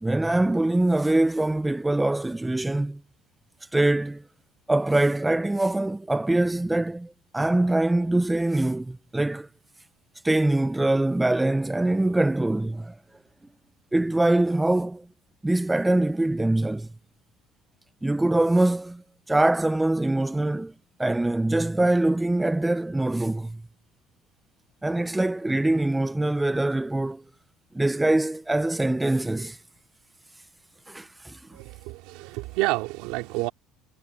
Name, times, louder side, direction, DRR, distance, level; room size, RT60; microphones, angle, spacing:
voice 1, 0.0-3.0 3.7-4.2 4.7-9.5 10.2-13.0 13.9-15.1 15.4-16.9 18.0-20.7 21.0-23.6 24.8-27.2 27.7-29.6 30.9-31.4, right 2 dB, 5° right, 0.3 m, -23 dB
voice 2, 31.5-33.5, right 21 dB, 70° right, 3.0 m, -29 dB
cardioid pair, 160°, 0 cm